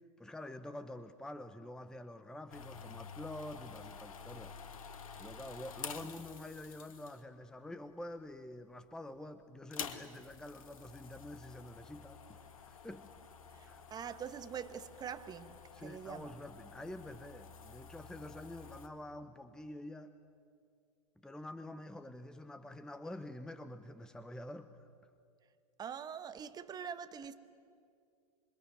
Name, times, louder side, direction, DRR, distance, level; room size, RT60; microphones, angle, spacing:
voice 1, 0.2-4.6 5.2-13.1 13.6-13.8 15.7-20.1 21.2-24.9, left 1 dB, 5° left, 0.9 m, -47 dB
sound 1, 2.5-7.4 8.2-8.6 8.9-9.0 9.6-18.9, left 6 dB, 65° left, 2.0 m, -50 dB
voice 2, 13.5-16.4 25.8-27.3, right 8 dB, 20° right, 1.3 m, -44 dB
27.0 x 23.5 x 9.3 m
figure-of-eight pair, 95°, 19 cm